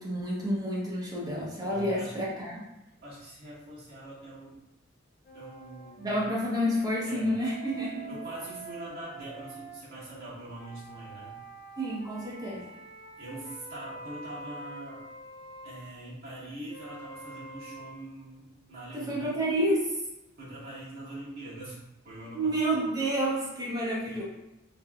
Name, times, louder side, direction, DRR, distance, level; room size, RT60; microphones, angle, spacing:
voice 1, 0.0-2.6 6.0-8.2 11.8-12.6 18.9-19.9 22.3-24.2, equal, 20° right, -5 dB, 0.7 m, -29 dB
voice 2, 1.7-2.2 3.0-4.5 5.3-6.2 7.0-7.4 8.1-11.4 13.2-15.1 15.6-19.3 20.4-21.8 22.0-22.5 24.0-24.1, right 1 dB, 50° right, -8 dB, 1.5 m, -43 dB
sound 1, 5.2-9.8 10.5-15.9 16.7-17.9, right 3 dB, 50° left, 0.5 m, -46 dB
3.4 x 3.3 x 2.2 m, 0.94 s
head